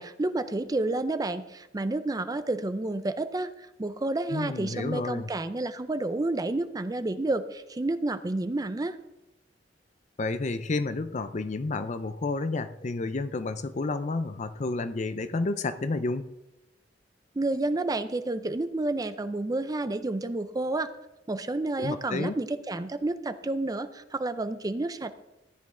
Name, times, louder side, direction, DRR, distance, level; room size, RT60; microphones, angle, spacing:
voice 1, 0.0-9.0 17.4-20.9 21.3-25.1, right 2 dB, 20° right, 12 dB, 0.5 m, -30 dB
voice 2, 4.3-5.3 10.2-16.3 21.8-22.3, left 3 dB, 40° left, 12 dB, 0.5 m, -30 dB
14.0 x 10.0 x 3.7 m, 0.95 s
head